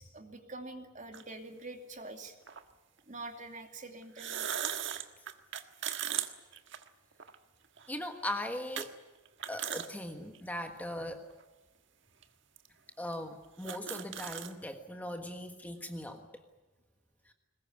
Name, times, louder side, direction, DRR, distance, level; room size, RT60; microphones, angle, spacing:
voice 1, 0.0-2.3 3.1-4.8, right 2 dB, 35° right, 5 dB, 2.6 m, -45 dB
sound 1, 1.1-1.2 2.5-2.6 4.0-7.4 7.8-7.9 8.8-8.9 9.3-9.9 10.3-10.4 11.3-11.4 12.2-12.3 12.6-12.7 13.1-13.2 13.4-14.5, right 9 dB, 60° right, 1.6 m, -37 dB
voice 2, 7.9-8.9 9.5-11.3 13.0-16.3 17.3-17.4, left 1 dB, 10° left, 5 dB, 1.4 m, -39 dB
22.5 x 20.5 x 9.4 m, 1.2 s
head